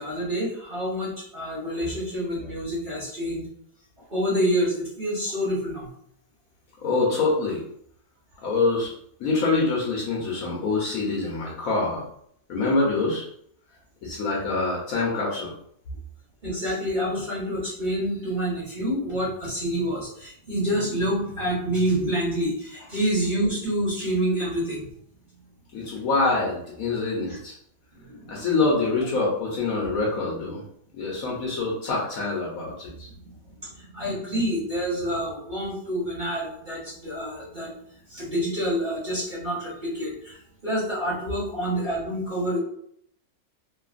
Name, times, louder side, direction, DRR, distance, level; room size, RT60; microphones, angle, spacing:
voice 1, 0.0-3.4 4.1-5.9 16.4-24.8 27.3-27.4 28.1-28.5 33.7-37.7 38.1-40.3 40.6-42.6, equal, 35° right, -8 dB, 1.0 m, -27 dB
voice 2, 6.8-7.6 8.4-8.9 9.2-12.0 12.5-13.2 14.0-15.5 25.7-27.5 28.3-30.6 30.9-33.1, left 3 dB, 65° left, -4 dB, 1.1 m, -25 dB
3.2 x 2.3 x 2.4 m, 0.68 s
omnidirectional pair, 1.8 m